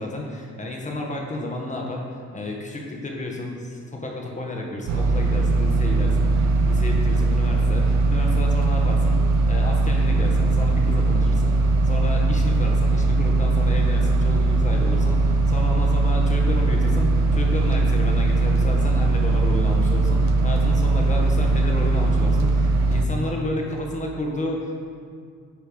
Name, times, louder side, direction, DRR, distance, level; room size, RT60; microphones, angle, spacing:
voice 1, 0.0-24.9, left 1 dB, 25° left, 0 dB, 1.6 m, -31 dB
sound 1, 4.9-23.1, right 3 dB, 65° right, 0.8 m, -20 dB
10.0 x 4.5 x 5.2 m, 2.2 s
cardioid pair, 90°, 30 cm